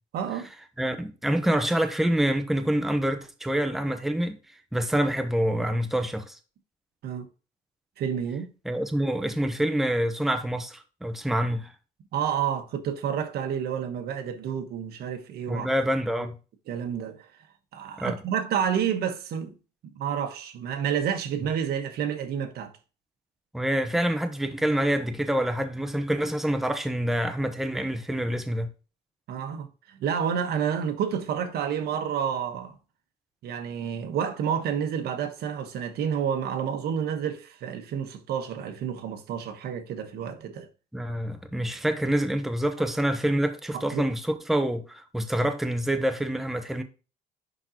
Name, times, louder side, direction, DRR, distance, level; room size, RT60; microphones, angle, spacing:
voice 1, 0.1-0.5 7.0-7.3 8.0-8.5 12.1-15.7 16.7-17.3 17.7-19.6 19.9-22.7 29.3-32.8 33.4-40.7 43.7-44.0, right 8 dB, 70° right, 1.3 m, -29 dB
voice 2, 0.8-4.4 4.7-6.4 8.6-11.7 15.5-16.3 18.0-18.2 23.5-28.7 40.9-46.8, right 1 dB, ahead, 0.9 m, -26 dB
10.5 x 3.9 x 2.9 m
cardioid pair, 110°, 17 cm